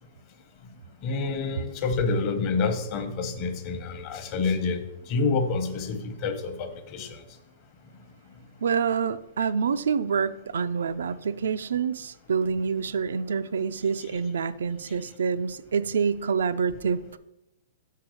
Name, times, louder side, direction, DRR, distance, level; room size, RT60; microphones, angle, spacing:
voice 1, 1.0-7.2 14.9-15.0, left 4 dB, 35° left, 7 dB, 0.9 m, -28 dB
voice 2, 8.6-17.2, right 6 dB, 90° right, 13 dB, 0.4 m, -27 dB
6.0 x 4.7 x 6.3 m, 0.90 s
hypercardioid pair, 150°, 0 cm